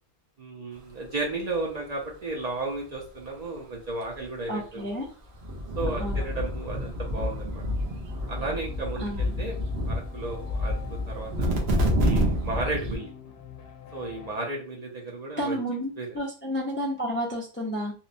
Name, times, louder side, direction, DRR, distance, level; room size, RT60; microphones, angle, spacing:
voice 1, 0.4-4.9 5.8-7.6 8.3-9.6 9.9-11.6 12.0-13.1 13.9-15.6 16.0-16.2, right 2 dB, 50° right, -1 dB, 0.6 m, -34 dB
voice 2, 4.5-5.1 6.0-6.3 9.0-9.5 15.4-17.9, equal, 15° left, -3 dB, 0.4 m, -31 dB
sound 1, 4.8-4.9 5.4-13.0, equal, 80° right, 0.9 m, -28 dB
sound 2, 6.1-14.4, left 7 dB, 70° left, 0.7 m, -47 dB
2.8 x 2.0 x 2.5 m, 0.36 s
omnidirectional pair, 1.1 m